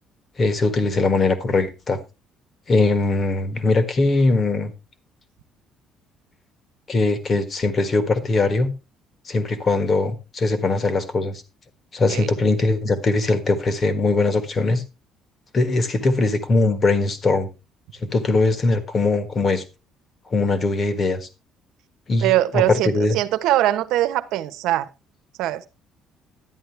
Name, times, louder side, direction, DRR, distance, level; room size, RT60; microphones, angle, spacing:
voice 1, 0.4-2.0 2.7-4.7 6.9-8.7 9.2-11.4 11.9-14.8 15.5-17.5 18.0-19.6 20.3-21.3 22.1-23.1, left 3 dB, 25° left, 1.5 m, -21 dB
voice 2, 22.2-24.9 25.4-25.7, right 14 dB, 80° right, 1.1 m, -22 dB
11.5 x 10.0 x 3.4 m
cardioid pair, 175°, 0 cm